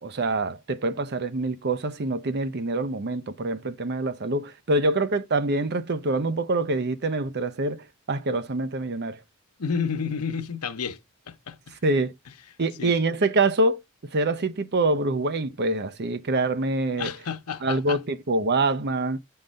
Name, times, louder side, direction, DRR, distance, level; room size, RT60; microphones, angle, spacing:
voice 1, 0.0-9.2 11.7-12.1 12.6-17.1 17.6-19.2, right 2 dB, 50° right, 0.7 m, -25 dB
voice 2, 9.6-11.0 11.3-11.7 12.8-12.9 17.0-18.0, left 6 dB, 90° left, 0.9 m, -30 dB
8.9 x 3.9 x 5.2 m
head